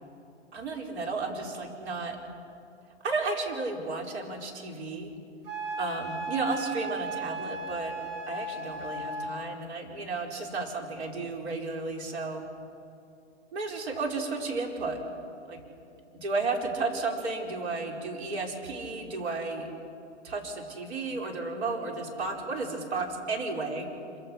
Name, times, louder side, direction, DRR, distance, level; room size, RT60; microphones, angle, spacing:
voice 1, 0.5-2.2 3.0-5.1 5.8-7.9 8.3-12.4 13.5-15.0 15.5-15.6 16.1-19.7 20.2-23.9, right 3 dB, 65° right, 1 dB, 5.0 m, -33 dB
Wind instrument woodwind instrument, 5.5-9.3, right 1 dB, 40° right, 5.8 m, -36 dB
26.0 x 24.5 x 6.4 m, 2.6 s
hypercardioid pair, 145°, 36 cm